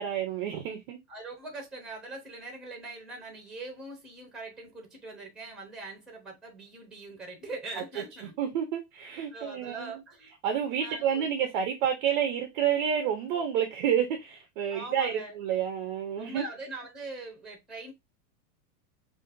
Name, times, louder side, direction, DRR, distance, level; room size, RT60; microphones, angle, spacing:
voice 1, 0.0-1.0 8.4-10.0 10.4-16.4, right 8 dB, 35° right, 0.4 m, -29 dB
voice 2, 1.1-8.4 9.3-10.3 10.8-11.2 14.7-15.4 16.2-17.9, right 2 dB, ahead, 0.8 m, -42 dB
5.1 x 2.5 x 2.5 m
supercardioid pair, 165°, 45 cm